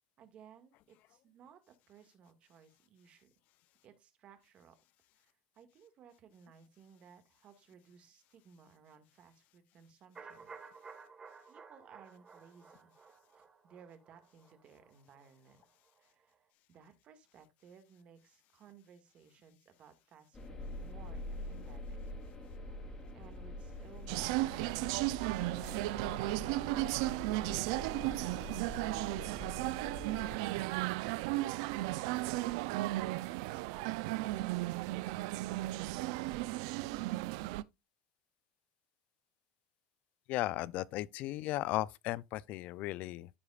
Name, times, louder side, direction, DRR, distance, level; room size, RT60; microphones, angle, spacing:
voice 1, 0.2-3.3 3.8-4.7 5.1-10.5 11.5-12.9 13.6-15.6 16.0-22.0 23.1-25.1 25.5-26.1 26.4-27.2 27.9-28.3, right 7 dB, 40° right, 1.8 m, -59 dB
sound 1, 10.1-16.0 16.3-16.4, right 5 dB, 20° right, 1.3 m, -55 dB
sound 2, 20.3-30.4, left 1 dB, 25° left, 2.9 m, -45 dB
sound 3, 24.1-37.6, right 19 dB, 75° right, 0.4 m, -35 dB
voice 2, 40.3-43.3, left 16 dB, 55° left, 0.4 m, -36 dB
14.0 x 4.9 x 2.4 m
supercardioid pair, 135°, 3 cm